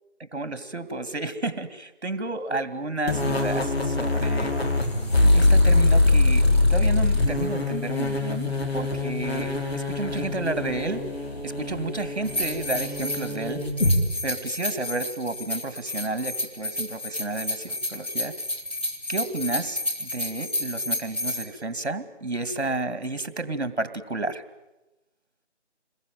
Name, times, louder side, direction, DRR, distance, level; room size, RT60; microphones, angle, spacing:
voice 1, 0.2-4.6 5.3-11.0 11.4-13.6 14.2-18.3 19.1-24.4, right 2 dB, 65° right, 12 dB, 2.4 m, -31 dB
sound 1, 3.1-14.0, left 2 dB, 60° left, 5.1 m, -23 dB
sound 2, 12.2-21.4, left 1 dB, 10° left, 1.3 m, -31 dB
27.5 x 21.5 x 9.3 m, 0.99 s
figure-of-eight pair, 165°, 36 cm